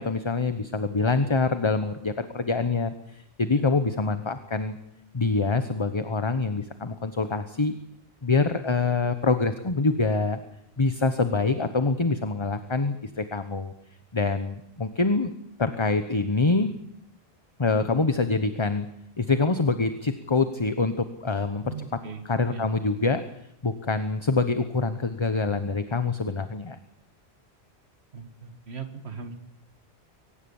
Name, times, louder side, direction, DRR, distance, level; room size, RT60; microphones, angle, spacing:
voice 1, 0.0-4.8 5.1-7.7 8.2-10.4 10.8-13.7 14.1-15.3 15.6-16.7 17.6-18.9 19.2-21.7 22.2-23.2 23.6-26.8, left 3 dB, 25° left, 10 dB, 1.0 m, -25 dB
voice 2, 21.6-22.2 22.5-22.7 28.1-29.4, right 5 dB, 75° right, 7 dB, 2.1 m, -39 dB
23.5 x 18.5 x 7.2 m, 0.79 s
omnidirectional pair, 1.1 m